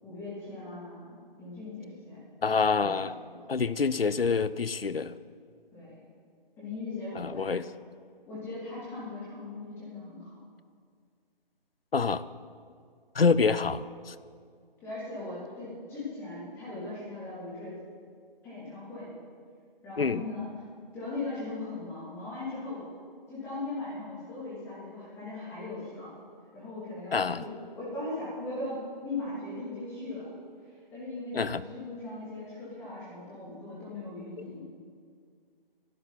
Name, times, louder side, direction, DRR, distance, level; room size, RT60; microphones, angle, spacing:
voice 1, 0.0-2.2 2.8-3.5 5.7-6.0 6.6-7.6 8.3-10.3 13.3-13.4 14.8-17.7 18.4-19.1 19.8-20.5 20.9-22.9 23.3-26.1 26.5-30.3 30.7-34.6, left 2 dB, 10° left, -9 dB, 2.9 m, -39 dB
voice 2, 2.4-3.1 3.5-5.1 7.2-7.6 11.9-12.3 13.1-14.1 20.0-20.2 27.1-27.4 31.3-31.6, left 5 dB, 80° left, 16 dB, 0.7 m, -26 dB
24.0 x 12.0 x 4.1 m, 2.1 s
figure-of-eight pair, 155°, 29 cm